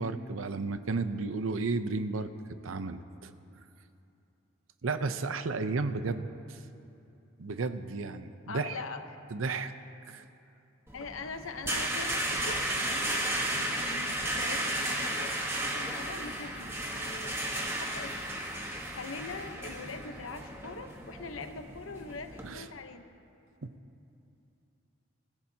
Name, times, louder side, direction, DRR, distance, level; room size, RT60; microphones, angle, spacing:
voice 1, 0.0-2.3 2.6-3.3 4.8-6.3 7.4-8.7 9.3-9.7 10.1-10.2 22.4-22.6, right 3 dB, 80° right, 10 dB, 0.7 m, -33 dB
voice 2, 8.5-9.2 10.9-18.2 18.9-23.1, left 3 dB, 80° left, 7 dB, 0.9 m, -43 dB
sound 1, 10.9-22.5, right 1 dB, 15° right, 1.2 m, -34 dB
24.5 x 16.0 x 2.8 m, 2.7 s
head